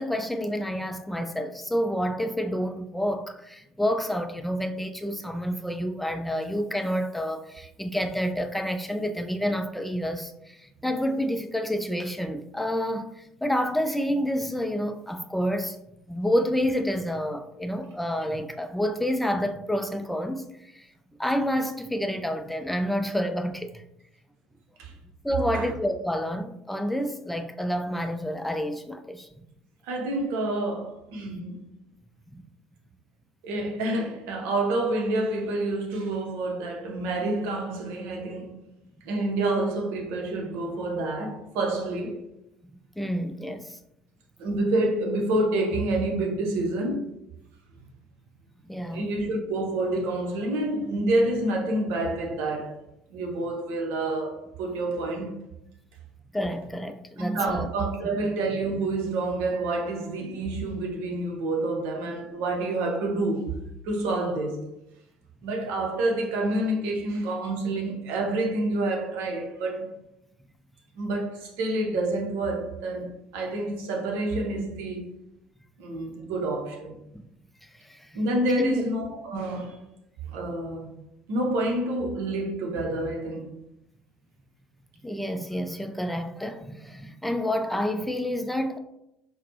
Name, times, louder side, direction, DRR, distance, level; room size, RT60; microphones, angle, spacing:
voice 1, 0.0-15.8 16.1-20.9 21.2-23.8 25.2-29.3 32.3-32.4 43.0-43.8 48.7-49.1 56.3-57.7 77.1-77.2 77.9-78.1 78.6-78.7 85.0-88.8, equal, 5° left, 0.3 m, -29 dB
voice 2, 29.9-31.6 33.4-38.5 39.0-42.2 44.4-47.2 48.9-52.8 53.1-55.4 57.2-64.7 65.4-70.0 71.0-75.1 75.8-77.0 78.1-79.8 80.3-80.9 81.3-83.5, right 2 dB, 60° right, 0.7 m, -28 dB
4.1 x 2.0 x 2.7 m
figure-of-eight pair, 55°, 4 cm